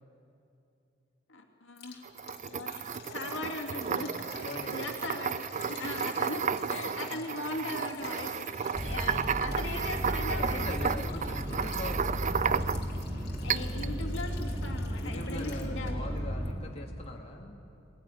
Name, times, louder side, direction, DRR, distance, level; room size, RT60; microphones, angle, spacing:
voice 1, 1.3-2.1 2.5-4.1 4.7-6.4 6.7-11.2 13.4-16.1, left 2 dB, 75° left, 3 dB, 2.2 m, -39 dB
Liquid, 1.8-16.2 16.4-16.5 17.0-17.1, left 5 dB, 60° left, 2.6 m, -50 dB
sound 1, 2.0-13.0 13.5-13.9, right 7 dB, 40° right, 0.5 m, -33 dB
voice 2, 4.3-4.8 5.7-5.9 6.7-7.3 8.9-9.2 10.3-12.6 15.0-17.6, left 1 dB, 35° left, 0 dB, 2.1 m, -42 dB
sound 2, 8.7-16.5, equal, 10° right, 3.1 m, -34 dB
21.5 x 18.5 x 10.0 m, 2.7 s
head